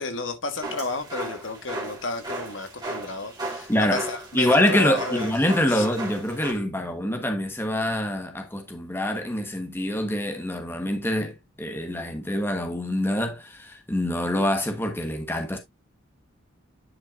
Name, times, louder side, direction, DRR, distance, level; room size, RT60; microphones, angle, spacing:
voice 1, 0.0-5.3 5.7-5.9, left 3 dB, 65° left, 1.4 m, -32 dB
sound 1, 0.6-6.5, right 1 dB, 20° right, 2.6 m, -35 dB
voice 2, 3.7-4.0 4.3-15.6, left 1 dB, 10° left, 1.2 m, -25 dB
10.0 x 5.5 x 2.5 m
head